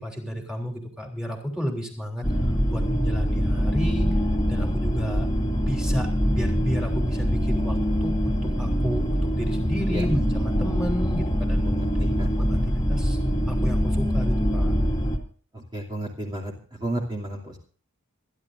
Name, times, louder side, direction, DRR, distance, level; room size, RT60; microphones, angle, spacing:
voice 1, 0.0-4.1 4.5-5.3 5.6-11.8 12.1-13.2 13.5-14.7, equal, 5° right, 1 dB, 3.4 m, -31 dB
sound 1, 2.2-15.2, equal, 20° left, 2.2 m, -24 dB
voice 2, 15.5-17.6, right 1 dB, 20° right, -2 dB, 2.7 m, -32 dB
27.0 x 11.0 x 2.6 m, 0.43 s
head